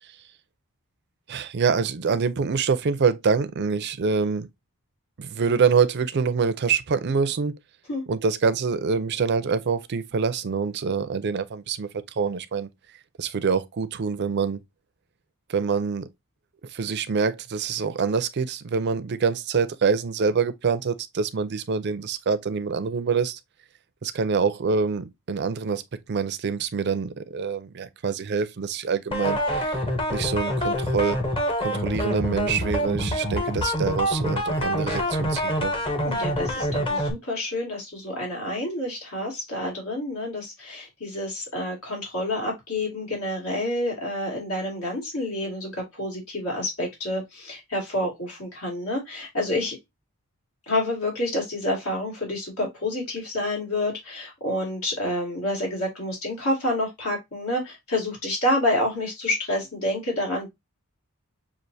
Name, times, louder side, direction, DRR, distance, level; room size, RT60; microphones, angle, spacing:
voice 1, 1.3-4.5 5.2-7.5 8.1-11.9 12.2-12.7 13.2-14.6 15.5-16.1 16.7-23.4 24.0-25.8 26.1-29.4 29.7-29.8 30.1-31.2 31.6-35.7, right 5 dB, 50° right, 0.5 m, -25 dB
sound 1, 29.1-37.1, equal, 25° left, 0.8 m, -26 dB
voice 2, 36.0-49.8 50.7-60.5, left 1 dB, 70° left, 2.2 m, -28 dB
6.2 x 2.5 x 2.6 m
head